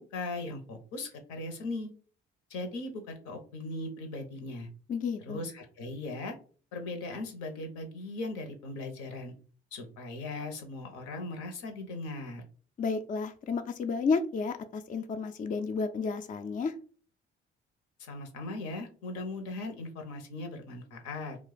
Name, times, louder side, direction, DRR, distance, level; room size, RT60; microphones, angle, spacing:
voice 1, 0.0-1.9 2.5-4.7 5.3-6.4 6.7-9.3 9.7-12.4 18.0-21.4, left 2 dB, 70° left, 4 dB, 0.9 m, -38 dB
voice 2, 4.9-5.5 12.8-16.7, left 4 dB, 25° left, 7 dB, 0.4 m, -31 dB
2.4 x 2.3 x 3.9 m, 0.40 s
hypercardioid pair, 50°, 31 cm